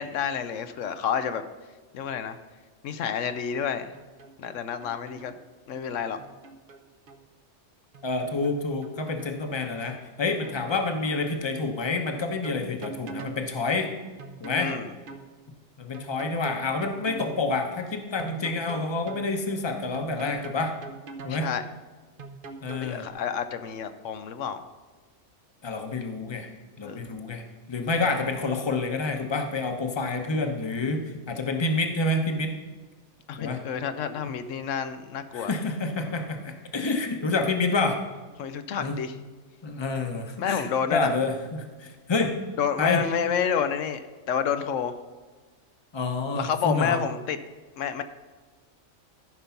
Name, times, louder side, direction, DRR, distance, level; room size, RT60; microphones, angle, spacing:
voice 1, 0.0-1.4 1.9-2.4 2.8-3.9 4.4-5.3 5.7-6.2 14.6-14.9 21.3-21.6 22.8-24.6 26.8-27.0 33.3-35.5 38.4-39.1 40.4-41.1 42.6-44.9 46.3-47.4 47.8-48.0, left 7 dB, 85° left, 10 dB, 1.0 m, -29 dB
sound 1, 3.9-4.6 4.8-5.4 6.2-7.2 7.9-9.4 10.2-10.8 11.1-11.2 11.9-13.4 14.2-15.3 15.9-17.4 18.2-19.3 19.9-21.4 22.2-23.1, right 4 dB, 50° right, 0.9 m, -42 dB
voice 2, 8.0-13.9 14.4-14.7 15.8-20.7 21.2-21.5 22.6-23.1 25.6-26.5 26.8-27.4 27.7-32.5 33.4-33.6 35.3-38.0 38.8-39.0 39.6-42.3 42.8-43.0 45.9-47.0, left 3 dB, 25° left, 5 dB, 0.9 m, -28 dB
14.0 x 5.3 x 5.8 m, 1.3 s
omnidirectional pair, 1.3 m